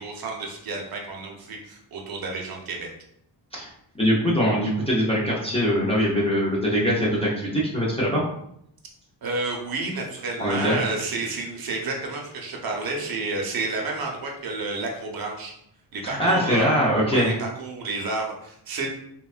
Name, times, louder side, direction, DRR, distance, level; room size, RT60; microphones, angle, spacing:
voice 1, 0.0-2.9 9.2-15.5 15.9-16.6 17.0-18.9, right 3 dB, 55° right, 0 dB, 0.6 m, -30 dB
voice 2, 4.0-8.2 10.4-10.8 16.0-17.3, equal, 15° left, -6 dB, 0.4 m, -22 dB
3.3 x 2.2 x 2.4 m, 0.72 s
wide cardioid pair, 175°, 42 cm